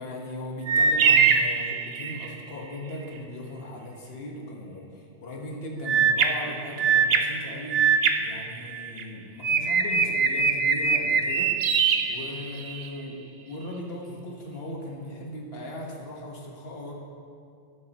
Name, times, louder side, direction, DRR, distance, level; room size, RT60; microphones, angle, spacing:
voice 1, 0.0-16.9, left 1 dB, 55° left, -1 dB, 1.6 m, -38 dB
sound 1, 0.7-2.4 5.9-9.0 9.4-12.9, right 6 dB, 60° right, 0.9 m, -23 dB
13.5 x 9.5 x 3.0 m, 2.5 s
omnidirectional pair, 1.2 m